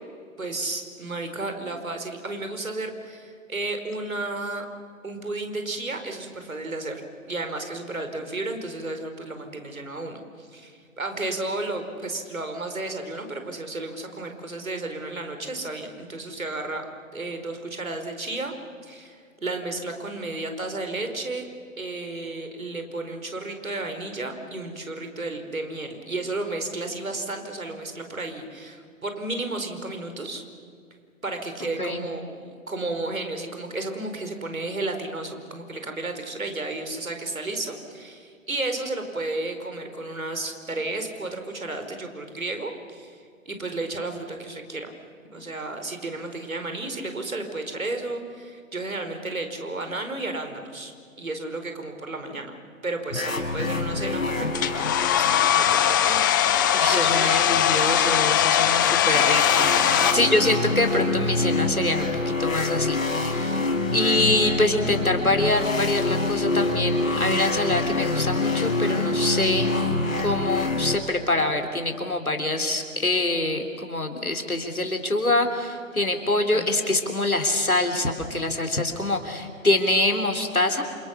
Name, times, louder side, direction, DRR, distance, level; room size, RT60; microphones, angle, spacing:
voice 1, 0.4-4.6 5.0-7.0 7.3-16.8 17.1-18.5 18.8-21.5 21.8-30.4 31.2-44.9 45.3-50.9 51.2-52.5 52.8-56.2 56.9-57.4 60.1-60.4 76.5-76.7, right 2 dB, 75° right, 6 dB, 5.0 m, -33 dB
sound 1, 53.1-56.3 59.1-71.0, left 2 dB, 70° left, 6.0 m, -26 dB
Domestic sounds home sounds, 54.5-60.1, left 10 dB, 15° left, 0.7 m, -20 dB
voice 2, 56.7-63.6 63.9-69.7 70.2-80.8, left 2 dB, 85° left, 5 dB, 3.9 m, -25 dB
28.5 x 28.0 x 7.1 m, 2.2 s
figure-of-eight pair, 135°, 42 cm